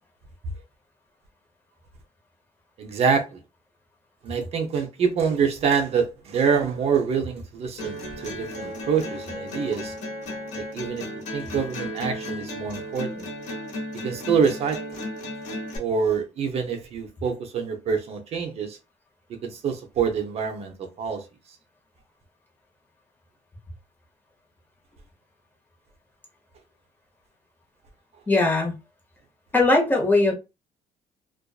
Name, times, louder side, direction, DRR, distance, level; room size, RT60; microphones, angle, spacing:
voice 1, 2.8-3.4 4.2-9.9 10.5-11.0 11.3-13.3 14.0-15.0 15.8-18.8 19.4-21.3, right 6 dB, 55° right, 0.6 m, -26 dB
sound 1, 7.8-15.8, left 1 dB, 70° left, 0.8 m, -34 dB
voice 2, 28.3-28.7 29.5-30.3, left 2 dB, 15° left, 0.9 m, -19 dB
2.4 x 2.2 x 2.3 m
cardioid pair, 125°, 13 cm